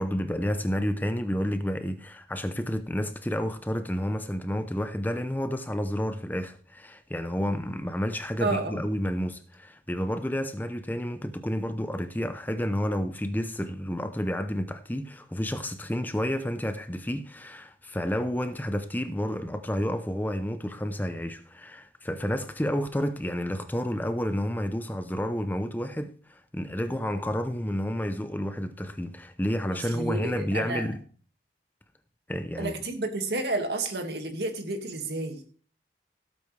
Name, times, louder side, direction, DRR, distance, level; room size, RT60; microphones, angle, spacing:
voice 1, 0.0-31.0 32.3-32.8, equal, 10° left, 0.6 m, -30 dB
voice 2, 8.4-8.8 29.7-30.9 32.6-35.4, right 2 dB, 70° right, 2.0 m, -31 dB
16.5 x 8.4 x 3.3 m
head